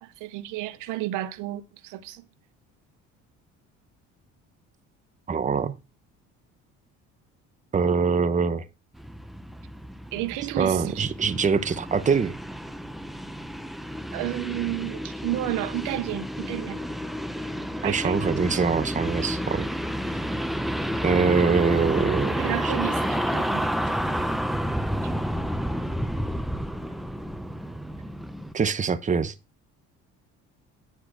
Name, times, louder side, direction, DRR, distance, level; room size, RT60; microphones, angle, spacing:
voice 1, 0.0-2.2 10.1-11.1 14.1-16.8 17.8-18.2 22.3-23.7 25.0-25.1, right 16 dB, 85° right, 0.9 m, -32 dB
voice 2, 5.3-5.7 7.7-8.6 10.6-12.4 17.8-19.7 21.0-22.7 28.5-29.3, right 5 dB, 25° right, 0.9 m, -24 dB
sound 1, 8.9-28.5, equal, ahead, 0.7 m, -30 dB
9.9 x 4.6 x 6.0 m
cardioid pair, 100°, 30 cm